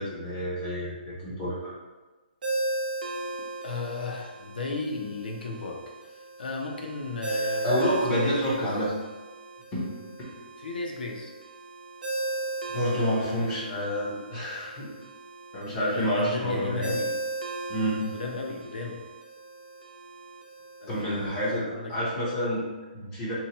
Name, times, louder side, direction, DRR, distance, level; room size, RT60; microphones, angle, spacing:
voice 1, 0.0-1.7 7.6-8.9 9.7-9.8 12.7-14.9 15.5-16.9 17.7-18.0 20.9-23.3, equal, 15° left, -8 dB, 0.6 m, -28 dB
Ringtone, 2.4-21.6, right 2 dB, 70° right, 0.7 m, -37 dB
voice 2, 3.6-8.7 10.6-11.3 13.0-13.4 15.8-17.2 18.1-19.0 20.8-21.9 22.4-22.5, left 3 dB, 80° left, 0 dB, 0.7 m, -35 dB
2.9 x 2.2 x 4.1 m, 1.2 s
hypercardioid pair, 175°, 5 cm